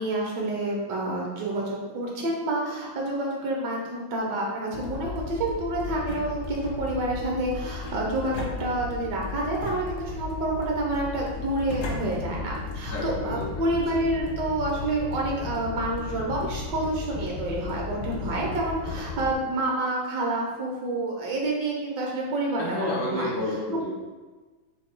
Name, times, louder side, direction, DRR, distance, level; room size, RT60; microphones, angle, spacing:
voice 1, 0.0-23.3, right 2 dB, 65° right, -2 dB, 1.5 m, -28 dB
sound 1, 4.7-19.3, left 4 dB, 90° left, 1.8 m, -35 dB
sound 2, 5.8-6.8 7.8-9.1 9.6-10.5 11.2-12.0, left 3 dB, 70° left, 1.5 m, -40 dB
voice 2, 12.9-13.4 13.9-14.0 22.6-23.9, left 1 dB, 10° left, -6 dB, 0.8 m, -30 dB
7.5 x 3.0 x 2.2 m, 1.3 s
omnidirectional pair, 2.2 m